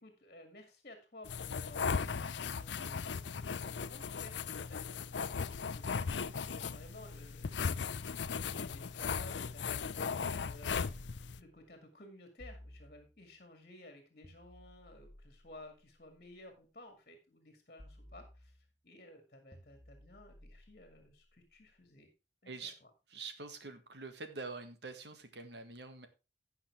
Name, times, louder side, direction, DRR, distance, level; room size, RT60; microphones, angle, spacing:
voice 1, 0.0-5.0 5.7-11.0 11.4-22.1 22.4-22.9, left 1 dB, 50° left, 6 dB, 2.1 m, -55 dB
sound 1, 1.2-11.4, left 5 dB, 80° left, 0.6 m, -37 dB
sound 2, 12.4-13.5 14.2-16.5 17.8-18.9 19.5-21.7, left 1 dB, 20° left, 1.5 m, -58 dB
voice 2, 22.5-22.8 23.1-26.1, right 4 dB, 70° right, 8 dB, 1.7 m, -45 dB
16.0 x 5.8 x 3.4 m, 0.29 s
head